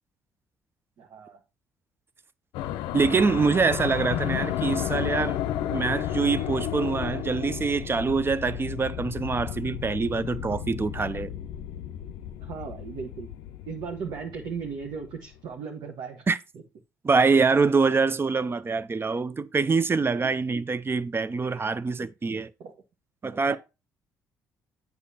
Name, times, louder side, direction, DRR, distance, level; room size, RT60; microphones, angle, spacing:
voice 1, 1.0-1.4 12.4-13.3 13.7-16.3 20.2-20.3 21.5-21.6 22.0-22.1 22.6-22.7 23.5-23.6, right 6 dB, 65° right, 1.2 m, -37 dB
sound 1, 2.5-15.1, left 11 dB, 75° left, 0.5 m, -33 dB
voice 2, 2.9-5.4 5.7-11.3 16.3-16.4 17.0-22.5 23.2-23.6, right 4 dB, 30° right, 0.6 m, -25 dB
8.2 x 6.8 x 2.8 m
hypercardioid pair, 55°, 8 cm